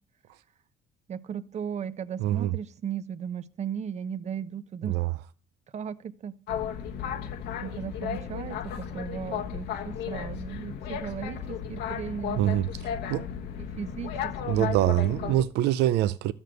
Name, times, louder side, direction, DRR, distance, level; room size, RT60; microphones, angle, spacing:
voice 1, 1.1-5.0 5.7-6.3 7.6-12.4 13.6-14.7, right 8 dB, 40° right, 0.9 m, -36 dB
voice 2, 2.2-2.5 4.8-5.1 12.4-12.7 13.1-13.3 14.5-16.3, right 13 dB, 85° right, 0.6 m, -24 dB
Boat Water vehicle, 6.5-15.4, left 8 dB, 80° left, 1.6 m, -34 dB
13.0 x 7.3 x 7.9 m
cardioid pair, 110°, 17 cm